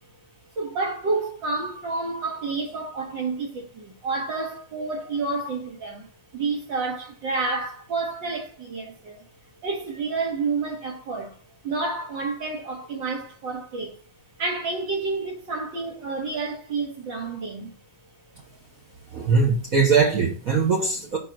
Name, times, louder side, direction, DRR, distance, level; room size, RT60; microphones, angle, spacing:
voice 1, 0.6-9.3 9.6-11.4 11.6-14.0 14.4-17.7, right 3 dB, 70° right, 2.4 m, -29 dB
voice 2, 19.1-21.2, right 5 dB, 50° right, 1.4 m, -21 dB
5.0 x 4.1 x 6.0 m
omnidirectional pair, 2.1 m